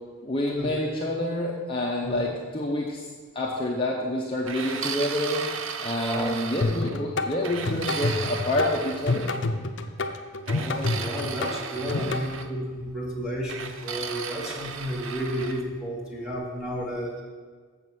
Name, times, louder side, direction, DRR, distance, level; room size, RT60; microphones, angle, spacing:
voice 1, 0.2-3.0 3.3-5.4 5.8-9.3, left 1 dB, 25° left, -3 dB, 0.8 m, -28 dB
sound 1, 4.5-7.0 7.4-9.4 10.5-12.5 13.5-15.6, right 6 dB, 65° right, 0.6 m, -35 dB
voice 2, 6.0-6.3 10.4-17.2, equal, 5° right, -3 dB, 1.6 m, -32 dB
sound 2, 6.6-12.2, left 2 dB, 60° left, 0.6 m, -28 dB
7.3 x 7.2 x 6.1 m, 1.5 s
head